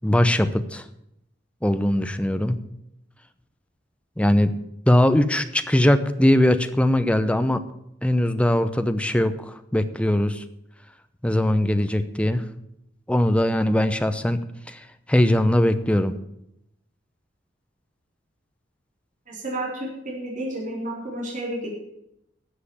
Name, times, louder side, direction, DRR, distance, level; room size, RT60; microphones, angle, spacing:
voice 1, 0.0-0.8 1.6-2.6 4.2-4.5 4.9-7.6 8.0-10.4 11.2-12.4 13.1-14.4 14.7-14.8 15.1-16.1, left 1 dB, 5° left, 10 dB, 0.7 m, -20 dB
voice 2, 19.3-21.7, right 1 dB, 45° right, -3 dB, 4.1 m, -31 dB
13.0 x 7.7 x 7.1 m, 0.80 s
head